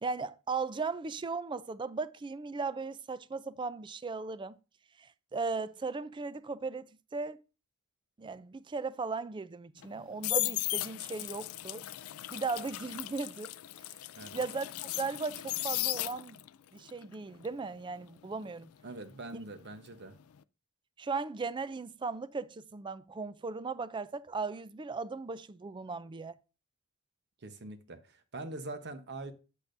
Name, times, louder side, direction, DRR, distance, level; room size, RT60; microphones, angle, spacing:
voice 1, 0.0-4.6 5.0-7.4 8.2-11.9 12.3-13.5 13.8-13.9 14.3-14.7 15.0-16.4 16.7-18.7 21.0-26.3, right 4 dB, 20° right, 0.4 m, -37 dB
sound 1, 9.8-16.5 16.9-19.8 20.0-20.4, left 17 dB, 75° left, 0.3 m, -36 dB
voice 2, 18.8-20.2 27.4-29.3, right 2 dB, 50° right, 1.0 m, -43 dB
8.3 x 8.2 x 2.6 m
head